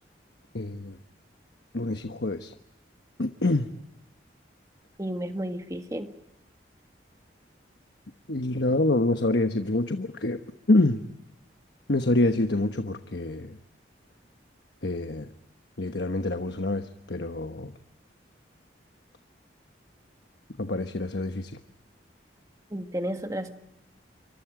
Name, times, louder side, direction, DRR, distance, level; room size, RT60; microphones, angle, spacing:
voice 1, 0.5-1.0 1.7-2.5 3.2-3.7 8.3-10.4 10.7-11.0 11.9-13.6 14.8-15.3 15.8-17.7 20.6-21.5, left 2 dB, 65° left, 7 dB, 1.2 m, -26 dB
voice 2, 5.0-6.1 22.7-23.5, right 1 dB, 20° right, 6 dB, 1.7 m, -32 dB
28.0 x 24.5 x 4.9 m, 0.83 s
head